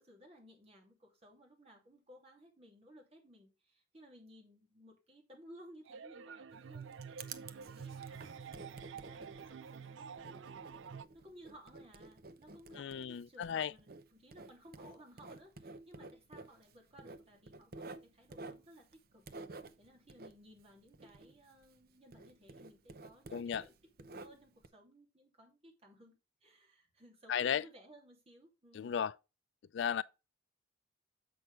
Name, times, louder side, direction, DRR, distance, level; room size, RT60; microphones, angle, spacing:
voice 1, 0.0-8.4 8.9-10.8 11.1-19.2 19.8-29.0, equal, 35° right, 2.7 m, -59 dB
sound 1, 5.9-11.0, right 6 dB, 80° right, 0.4 m, -48 dB
Writing, 6.5-21.8 22.1-24.7, right 3 dB, 55° right, 0.7 m, -52 dB
voice 2, 12.8-13.7 23.3-23.7 27.3-27.6 28.7-29.1 29.7-30.0, left 8 dB, 70° left, 0.3 m, -35 dB
7.6 x 6.1 x 3.3 m
head